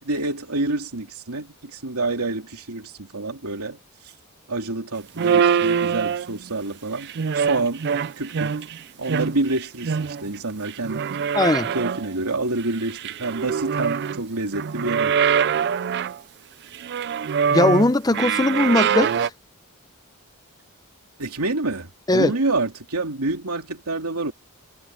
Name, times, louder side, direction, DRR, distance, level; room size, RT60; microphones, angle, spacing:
voice 1, 0.0-3.8 4.5-7.1 7.3-7.8 8.2-8.6 9.0-11.0 11.7-15.1 21.2-24.3, right 2 dB, 85° right, 3.0 m, -27 dB
sound 1, 5.2-6.5 7.0-8.8 9.1-10.4 10.7-12.1 12.6-14.2 14.5-16.2 16.7-19.3, right 7 dB, 50° right, 0.4 m, -24 dB
voice 2, 11.3-11.7 17.5-19.1 22.1-22.3, left 2 dB, 15° left, 0.6 m, -19 dB
head